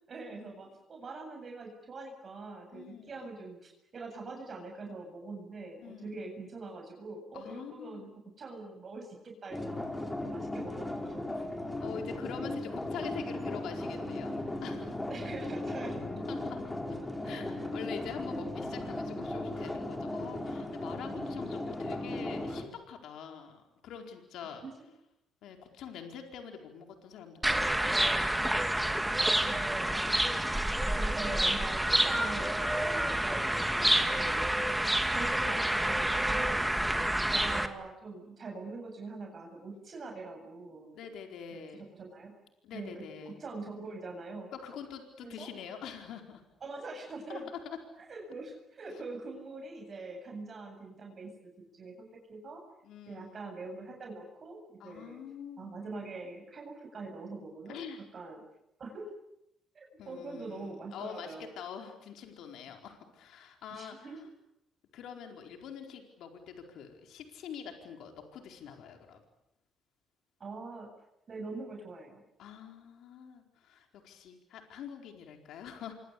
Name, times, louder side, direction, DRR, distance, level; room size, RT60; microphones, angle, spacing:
voice 1, 0.1-8.1 8.4-11.6 15.1-16.0 17.2-17.7 24.6-24.9 29.4-30.6 30.9-34.5 35.1-36.7 37.3-40.9 41.5-42.3 42.7-44.5 45.2-45.5 46.6-47.5 48.0-52.6 53.1-55.2 55.6-57.8 58.1-58.4 58.8-59.1 59.7-61.5 63.7-64.2 70.4-70.9 71.3-72.2, right 3 dB, 45° right, 2 dB, 7.7 m, -44 dB
voice 2, 2.7-3.3 5.8-6.2 7.3-8.1 11.8-15.0 16.3-16.6 17.2-24.6 25.4-28.4 29.3-30.8 32.7-33.1 33.8-34.7 36.8-37.3 40.9-41.8 42.6-43.4 44.5-46.4 47.3-47.8 48.9-49.0 52.8-53.5 54.8-55.7 57.7-58.0 60.0-64.2 64.9-69.2 72.4-75.9, left 7 dB, 80° left, 4 dB, 4.4 m, -45 dB
sound 1, 9.5-22.6, left 1 dB, 15° left, 4.8 m, -37 dB
sound 2, 27.4-37.7, right 1 dB, 5° right, 2.3 m, -28 dB
27.5 x 24.5 x 8.5 m, 0.85 s
cardioid pair, 90°, 0 cm